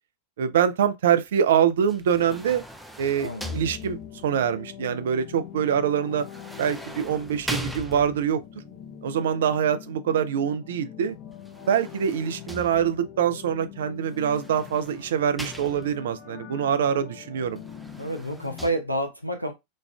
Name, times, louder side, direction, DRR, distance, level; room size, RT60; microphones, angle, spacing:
voice 1, 0.4-2.6 3.0-6.3 6.6-8.4 9.0-11.2 11.7-17.6, right 8 dB, 60° right, 0.4 m, -24 dB
sound 1, 1.9-4.3 6.2-8.5 11.3-13.2 14.2-16.2 17.5-18.7, equal, ahead, 0.5 m, -39 dB
voice 2, 3.2-3.6 18.0-19.5, right 1 dB, 90° left, 0.6 m, -29 dB
sound 2, 3.4-18.8, left 9 dB, 25° left, 0.8 m, -44 dB
5.1 x 2.4 x 2.3 m
figure-of-eight pair, 90°, 0 cm